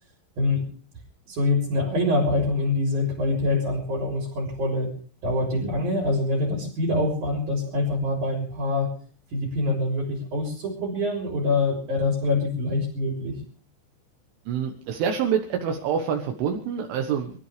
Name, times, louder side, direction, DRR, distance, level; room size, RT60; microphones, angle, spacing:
voice 1, 1.3-4.9 5.2-9.0 9.3-13.3, left 2 dB, 40° right, 1 dB, 4.6 m, -25 dB
voice 2, 14.5-17.3, right 7 dB, 75° right, 3 dB, 3.6 m, -26 dB
25.5 x 13.5 x 3.4 m, 0.42 s
omnidirectional pair, 5.9 m